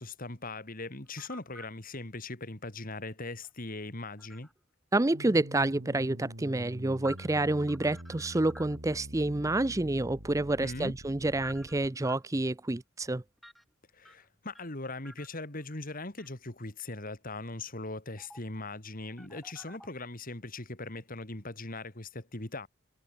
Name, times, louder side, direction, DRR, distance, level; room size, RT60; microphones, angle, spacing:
voice 1, 0.0-4.5 10.6-10.9 13.9-22.7, left 2 dB, 45° left, 2.9 m, -40 dB
sound 1, 1.1-1.7 3.4-4.6 6.6-9.0 10.4-12.3 13.4-13.6 14.1-14.8 15.1-15.6 16.2-16.3 18.2-18.6 19.0-19.9, equal, ahead, 4.3 m, -51 dB
voice 2, 4.9-13.2, right 2 dB, 15° right, 0.5 m, -28 dB
sound 2, 5.1-11.9, right 1 dB, 70° right, 4.0 m, -45 dB
head